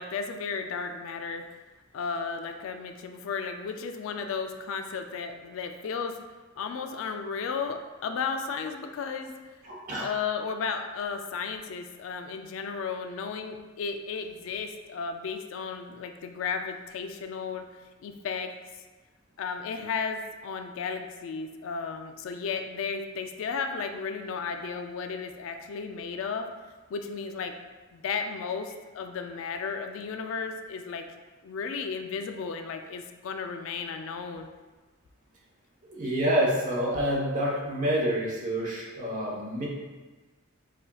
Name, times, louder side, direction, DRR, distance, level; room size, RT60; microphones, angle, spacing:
voice 1, 0.0-1.4 1.9-6.2 6.6-9.3 10.0-17.6 18.0-18.5 19.4-26.5 26.9-27.5 27.9-31.0 31.4-34.5, left 5 dB, 70° left, 6 dB, 0.3 m, -34 dB
voice 2, 9.6-10.1 35.9-39.7, equal, 40° right, -4 dB, 0.9 m, -28 dB
4.8 x 2.8 x 2.3 m, 1.3 s
head